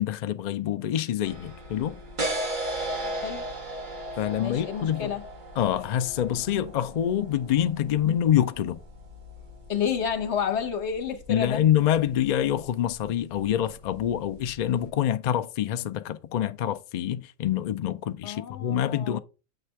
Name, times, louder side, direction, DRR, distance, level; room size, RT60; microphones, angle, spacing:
voice 1, 0.0-2.0 4.2-5.1 5.6-8.8 11.3-19.2, left 10 dB, 85° left, 0.3 m, -26 dB
sound 1, 1.2-14.9, right 1 dB, 40° right, 1.3 m, -38 dB
voice 2, 3.0-3.4 4.4-5.2 9.7-11.6 18.2-19.2, left 7 dB, 60° left, 1.3 m, -30 dB
7.9 x 3.3 x 4.5 m
omnidirectional pair, 1.3 m